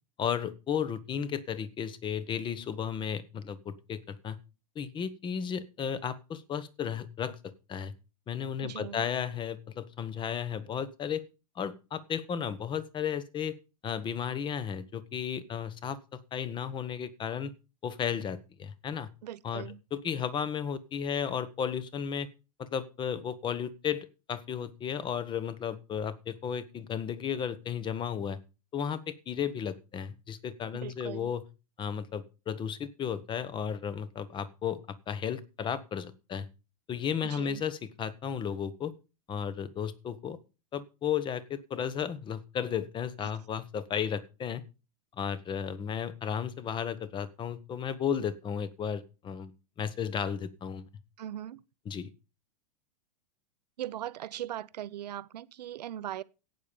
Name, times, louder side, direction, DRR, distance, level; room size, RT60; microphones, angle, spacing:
voice 1, 0.2-4.4 4.7-7.9 8.3-11.2 11.5-13.6 13.8-16.0 16.3-17.5 17.8-19.1 19.4-22.3 22.6-28.4 28.7-31.4 31.8-36.5 36.9-38.9 39.3-40.4 40.7-44.6 45.2-49.5 49.8-50.9 51.9-52.1, left 8 dB, 25° left, 1.2 m, -34 dB
voice 2, 8.6-9.0 10.1-10.2 19.2-19.8 30.7-31.3 37.2-37.6 43.2-43.3 51.2-51.6 53.8-56.2, right 12 dB, 90° right, 0.8 m, -40 dB
12.0 x 8.8 x 5.4 m
supercardioid pair, 135°, 21 cm